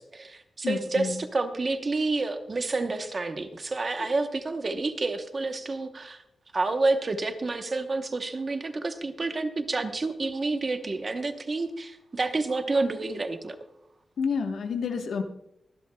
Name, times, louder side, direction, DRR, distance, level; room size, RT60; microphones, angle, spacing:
voice 1, 0.0-6.2 6.5-13.6, right 3 dB, 30° right, 7 dB, 0.9 m, -29 dB
voice 2, 0.6-1.2 14.2-15.2, left 5 dB, 80° left, 5 dB, 1.1 m, -29 dB
24.5 x 11.0 x 2.2 m, 0.80 s
wide cardioid pair, 180°, 0 cm